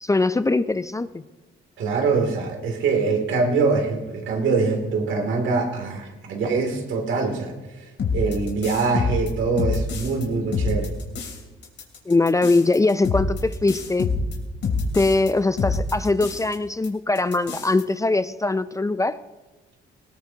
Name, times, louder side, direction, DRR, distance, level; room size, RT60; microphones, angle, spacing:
voice 1, 0.0-1.1 12.1-14.1 14.9-19.2, left 2 dB, 15° left, 13 dB, 0.5 m, -21 dB
voice 2, 1.8-7.8 8.1-10.9, right 4 dB, 75° right, 3 dB, 2.8 m, -24 dB
sound 1, 8.0-10.2 10.5-11.4 11.6-15.3 15.6-16.5 16.8-16.9 17.1-17.8, left 3 dB, 65° left, 3.1 m, -26 dB
19.5 x 18.5 x 2.9 m, 1.2 s
cardioid pair, 90°, 20 cm